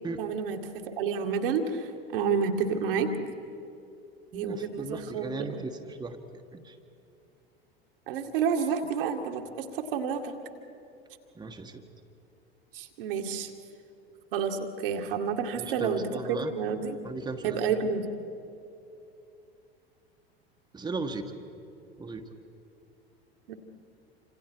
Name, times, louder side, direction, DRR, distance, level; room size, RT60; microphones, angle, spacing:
voice 1, 0.2-3.1 4.3-5.6 8.1-10.3 12.7-13.5 14.3-16.1 16.4-17.0 17.4-18.1 23.5-23.6, right 6 dB, 60° right, 4 dB, 2.1 m, -30 dB
voice 2, 4.3-6.8 11.3-11.8 15.6-16.5 17.0-17.6 20.7-21.3 22.0-22.2, right 3 dB, 15° right, 4 dB, 1.6 m, -37 dB
28.0 x 26.5 x 4.7 m, 2.7 s
figure-of-eight pair, 80°, 32 cm